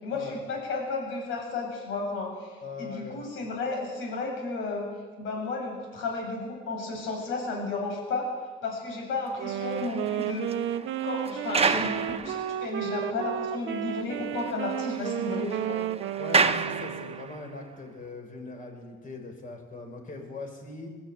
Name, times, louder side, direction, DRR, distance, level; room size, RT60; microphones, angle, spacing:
voice 1, 0.0-4.9 5.2-8.3 8.6-10.6 11.0-15.8, left 3 dB, 90° left, 1 dB, 7.3 m, -33 dB
voice 2, 2.6-3.3 16.2-20.9, left 3 dB, 45° left, 2 dB, 6.4 m, -40 dB
sound 1, 9.4-12.9 13.4-13.5 13.9-14.0 14.3-17.5, right 5 dB, 30° right, 1.1 m, -31 dB
Wind instrument woodwind instrument, 9.4-17.4, right 12 dB, 80° right, 0.7 m, -33 dB
20.5 x 13.5 x 9.3 m, 1.4 s
cardioid pair, 90°, 20 cm